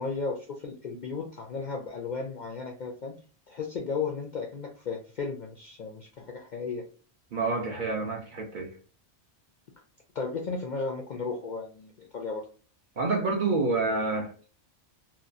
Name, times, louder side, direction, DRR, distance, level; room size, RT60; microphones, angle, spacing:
voice 1, 0.0-3.1 3.5-6.8 10.1-12.4, left 4 dB, 60° left, 0.5 m, -34 dB
voice 2, 7.3-8.7 13.0-14.5, right 3 dB, 55° right, 0.6 m, -28 dB
2.8 x 2.2 x 2.4 m
omnidirectional pair, 1.2 m